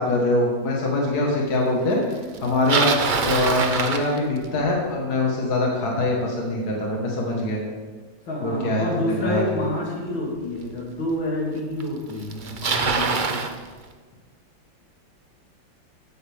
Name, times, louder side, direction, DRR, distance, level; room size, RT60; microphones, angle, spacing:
voice 1, 0.0-2.0 2.4-2.9 3.2-7.6 8.4-8.9 9.2-9.4, left 2 dB, 55° left, -2 dB, 2.3 m, -23 dB
Bicycle, 2.3-4.7 9.7-9.8 10.7-10.8 11.8-11.9 12.1-13.5, right 4 dB, 60° right, 0.5 m, -24 dB
voice 2, 8.3-13.5, left 1 dB, 85° left, -3 dB, 3.6 m, -28 dB
15.5 x 9.5 x 3.7 m, 1.4 s
omnidirectional pair, 2.1 m